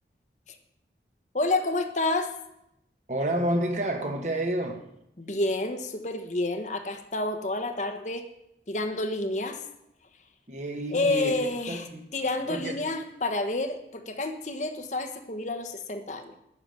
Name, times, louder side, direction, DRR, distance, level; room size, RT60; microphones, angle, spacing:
voice 1, 1.3-2.3 5.2-8.3 8.7-9.6 10.9-11.9 12.1-16.4, left 2 dB, 40° left, 7 dB, 1.2 m, -29 dB
voice 2, 3.1-4.8 10.5-11.3 11.7-12.0 12.5-12.8, right 1 dB, 40° right, 3 dB, 1.6 m, -29 dB
12.0 x 6.9 x 9.2 m, 0.81 s
head